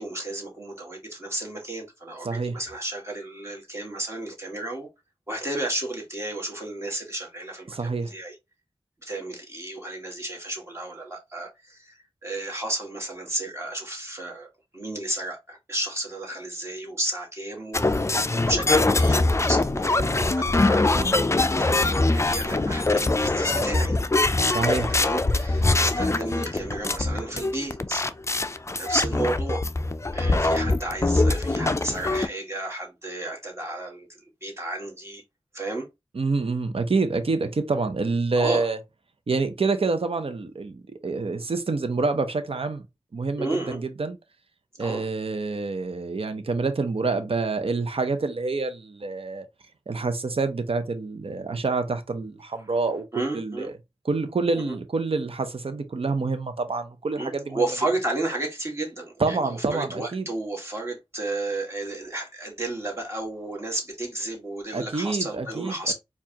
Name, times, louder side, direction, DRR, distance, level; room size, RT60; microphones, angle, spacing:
voice 1, 0.0-4.9 5.3-8.3 9.0-14.5 14.7-17.9 18.4-24.0 25.0-28.1 28.7-29.6 30.1-35.2 35.5-35.9 38.3-38.7 43.4-43.8 44.8-45.0 53.1-53.7 54.5-54.6 57.1-65.9, right 2 dB, 25° right, 1.7 m, -32 dB
voice 2, 2.2-2.6 7.7-8.1 24.5-24.9 36.1-38.8 39.3-42.8 43.1-44.2 44.8-49.5 49.9-53.1 53.3-53.7 54.0-57.6 59.2-60.3 64.7-65.8, right 3 dB, 65° right, 0.6 m, -27 dB
sound 1, 17.7-32.3, left 2 dB, 25° left, 0.4 m, -23 dB
4.5 x 2.4 x 2.8 m
wide cardioid pair, 50°, 11 cm